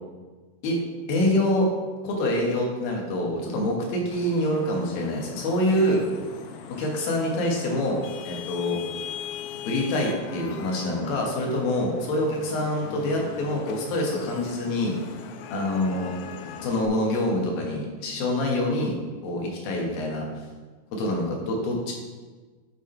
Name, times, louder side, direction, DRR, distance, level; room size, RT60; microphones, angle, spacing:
voice 1, 1.1-1.7 2.0-6.0 6.7-8.8 9.7-14.9 15.5-16.1 16.6-19.0 19.2-20.3 20.9-21.9, left 1 dB, 65° left, 0 dB, 2.6 m, -26 dB
Vehicle horn car horn honking / Traffic noise roadway noise, 4.1-16.9, left 7 dB, 85° left, 2.8 m, -40 dB
10.5 x 3.6 x 4.4 m, 1.4 s
omnidirectional pair, 5.1 m